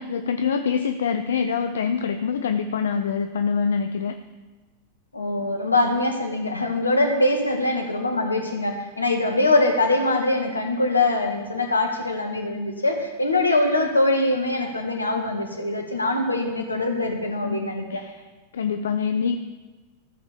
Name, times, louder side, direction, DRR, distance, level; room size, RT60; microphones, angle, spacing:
voice 1, 0.0-4.2 17.4-19.4, left 6 dB, 65° left, 8 dB, 0.6 m, -25 dB
voice 2, 5.1-18.0, left 2 dB, 80° left, 4 dB, 1.7 m, -23 dB
14.0 x 6.2 x 7.0 m, 1.3 s
figure-of-eight pair, 90°, 0 cm